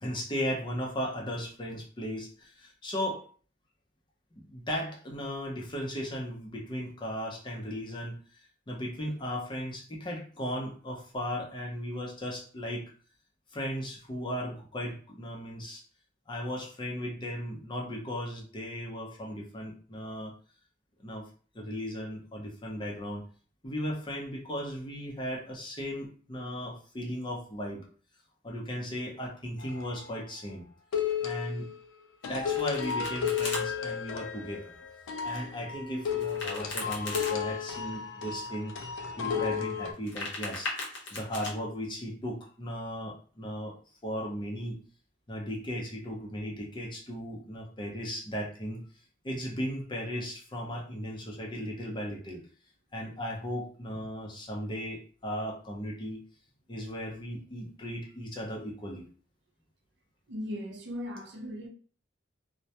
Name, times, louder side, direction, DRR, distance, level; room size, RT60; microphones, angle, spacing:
voice 1, 0.0-3.3 4.5-12.9 13.5-15.8 16.3-20.3 21.0-21.2 21.5-23.2 23.6-27.9 28.4-30.6 31.2-31.7 32.2-34.7 35.2-38.7 39.2-40.7 41.1-43.8 44.0-44.8 45.3-48.8 49.2-52.4 52.9-56.2 56.7-59.1, equal, 25° left, 0.6 m, -36 dB
sound 1, 29.6-30.1 30.9-31.8 32.2-39.9, left 7 dB, 80° left, 0.4 m, -33 dB
Domestic sounds home sounds, 32.2-33.6 36.2-37.3 39.9-41.5, left 2 dB, 60° left, 0.8 m, -38 dB
voice 2, 60.3-61.7, left 1 dB, 60° right, 0.5 m, -38 dB
2.2 x 2.1 x 2.8 m
head